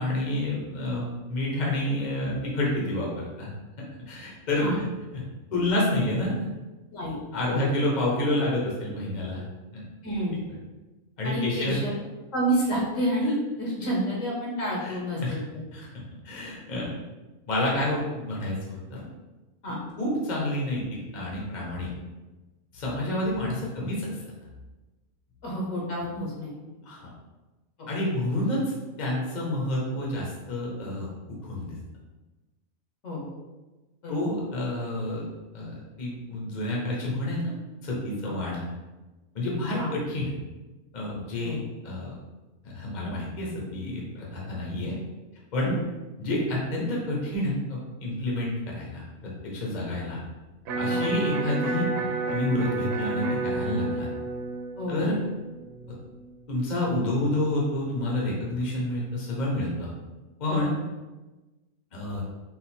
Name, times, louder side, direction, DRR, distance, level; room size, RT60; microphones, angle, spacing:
voice 1, 0.0-3.5 4.1-4.6 5.1-5.2 5.5-6.5 7.3-9.4 9.7-9.8 11.2-11.8 14.8-15.4 15.7-15.9 16.2-16.9 17.5-19.0 20.0-21.9 22.7-24.1 26.9-27.0 27.9-31.8 34.1-35.2 35.5-37.5 37.8-38.6 39.3-40.3 40.9-42.1 42.6-44.9 45.5-45.7 46.2-50.2 50.8-51.9 52.3-54.1 54.9-55.2 56.5-59.9 60.4-60.7 61.9-62.2, left 1 dB, 35° left, -4 dB, 1.0 m, -29 dB
voice 2, 10.0-10.4 11.2-11.9 12.3-15.6 19.6-19.8 25.4-26.5 27.8-27.9 33.0-33.3 34.0-34.2 38.2-38.3 39.8-39.9 41.4-41.6 45.6-45.8 50.9-51.0 54.8-55.1 60.5-60.6, equal, 65° left, -4 dB, 1.5 m, -29 dB
Electric guitar, 50.7-56.7, right 3 dB, 85° right, 1.1 m, -31 dB
4.0 x 2.6 x 4.2 m, 1.1 s
omnidirectional pair, 1.4 m